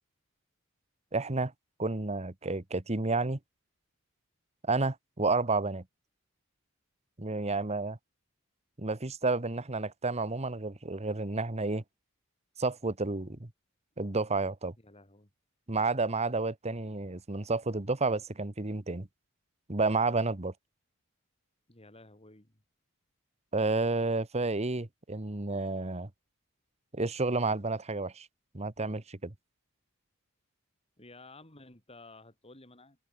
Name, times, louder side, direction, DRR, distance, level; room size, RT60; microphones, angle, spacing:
voice 1, 1.1-1.5 1.8-3.4 4.6-5.8 7.2-8.0 8.8-11.8 12.6-13.5 14.0-14.7 15.7-19.1 19.7-20.5 23.5-26.1 26.9-28.3 28.5-29.3, right 3 dB, 30° right, 1.3 m, -30 dB
voice 2, 14.8-15.3 21.7-22.5 31.0-33.0, left 2 dB, 30° left, 5.0 m, -53 dB
head